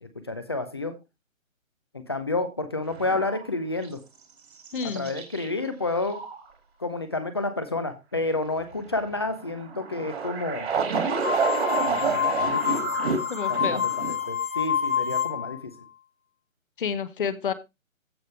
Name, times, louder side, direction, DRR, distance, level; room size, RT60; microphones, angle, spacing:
voice 1, 0.0-0.9 1.9-4.0 4.8-6.2 6.8-10.7 11.8-12.8 13.5-15.7, left 2 dB, 20° left, 9 dB, 0.6 m, -30 dB
sound 1, 2.9-3.5 3.8-3.9 4.7-5.5 6.0-6.4 9.1-14.3, right 5 dB, 50° right, 2.2 m, -29 dB
voice 2, 4.7-5.1 13.3-13.8 16.8-17.5, left 6 dB, 40° left, 15 dB, 0.9 m, -29 dB
sound 2, 11.2-15.6, left 8 dB, 80° left, 1.5 m, -27 dB
15.0 x 5.2 x 3.2 m, 0.24 s
figure-of-eight pair, 145°, 41 cm